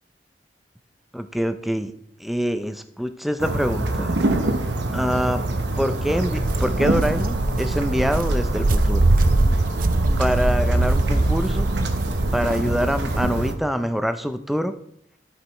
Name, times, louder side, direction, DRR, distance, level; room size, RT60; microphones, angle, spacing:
voice 1, 1.1-1.9 2.2-4.1 4.9-5.4 5.8-9.1 10.2-11.7 12.3-14.7, equal, ahead, 9 dB, 0.5 m, -25 dB
sound 1, 3.4-13.5, right 2 dB, 80° right, 0.9 m, -25 dB
Walk footsteps, 6.2-13.2, right 2 dB, 50° right, 0.5 m, -23 dB
12.5 x 5.0 x 4.4 m, 0.71 s
head